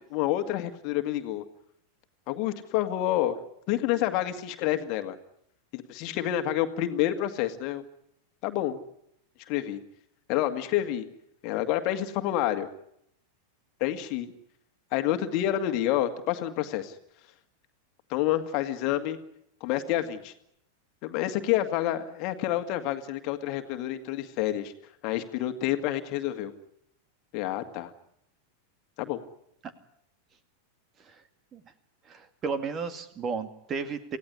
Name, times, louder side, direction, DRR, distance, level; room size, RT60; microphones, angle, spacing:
voice 1, 0.1-1.4 2.3-3.4 3.7-5.2 5.7-7.8 8.4-8.8 9.5-9.8 10.3-11.0 11.4-12.7 13.8-14.3 14.9-16.9 18.1-19.2 19.6-20.3 21.0-24.7 25.0-26.5 27.3-27.9 29.0-29.2, left 13 dB, 40° left, 8 dB, 2.0 m, -28 dB
voice 2, 32.1-34.2, right 5 dB, 25° right, 10 dB, 2.3 m, -33 dB
28.0 x 17.0 x 9.9 m, 0.77 s
figure-of-eight pair, 90°, 0 cm